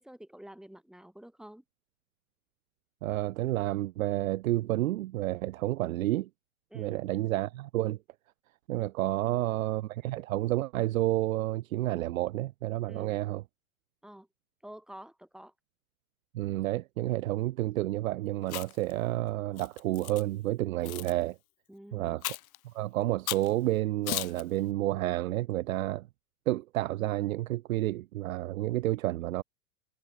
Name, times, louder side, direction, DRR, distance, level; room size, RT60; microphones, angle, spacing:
voice 1, 0.0-1.6 6.7-7.0 12.9-13.2 14.0-14.3 14.6-15.5 21.7-22.2, right 1 dB, ahead, 5.5 m, -49 dB
voice 2, 3.0-6.3 6.7-8.0 8.7-13.4 16.3-21.4 21.9-22.4 22.7-26.1 26.5-29.4, right 16 dB, 60° right, 1.5 m, -30 dB
Chewing mastication, 18.4-18.9 19.6-20.2 20.8-21.1 22.2-22.6 23.3-23.5 24.1-24.4, left 16 dB, 65° left, 0.8 m, -35 dB
hypercardioid pair, 125°, 45 cm